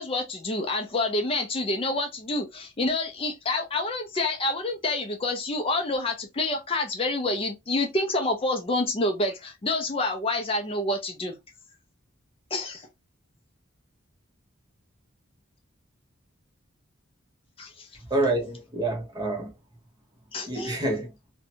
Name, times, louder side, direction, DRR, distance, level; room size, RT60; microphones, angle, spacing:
voice 1, 0.0-11.3 12.5-12.9 17.6-17.9 20.3-20.8, left 2 dB, 30° left, 0.4 m, -28 dB
voice 2, 18.1-19.5 20.5-21.1, right 2 dB, 20° right, 0.8 m, -27 dB
2.7 x 2.1 x 2.7 m
head